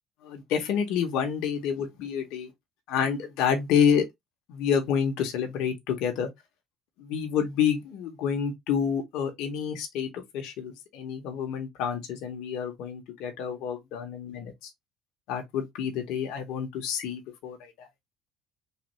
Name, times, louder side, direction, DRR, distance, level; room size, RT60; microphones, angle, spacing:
voice 1, 0.2-2.5 2.9-4.0 4.5-6.3 7.0-14.7 15.3-17.9, left 7 dB, 80° left, 0.9 m, -28 dB
3.2 x 2.4 x 3.0 m
cardioid pair, 115°, 0 cm